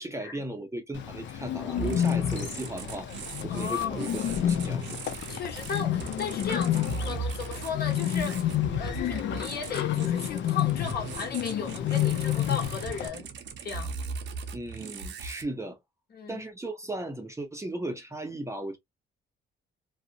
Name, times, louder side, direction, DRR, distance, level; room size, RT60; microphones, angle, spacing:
voice 1, 0.0-3.1 3.4-4.8 14.5-15.8 16.3-18.8, right 1 dB, 15° right, 0.6 m, -36 dB
Bird, 0.9-13.1, left 10 dB, 70° left, 0.5 m, -29 dB
sound 1, 1.7-15.4, right 5 dB, 65° right, 0.6 m, -39 dB
voice 2, 3.5-4.1 5.3-13.3 13.6-14.0 16.1-16.4, left 6 dB, 55° left, 1.1 m, -36 dB
2.4 x 2.0 x 2.5 m
cardioid pair, 90°, 20 cm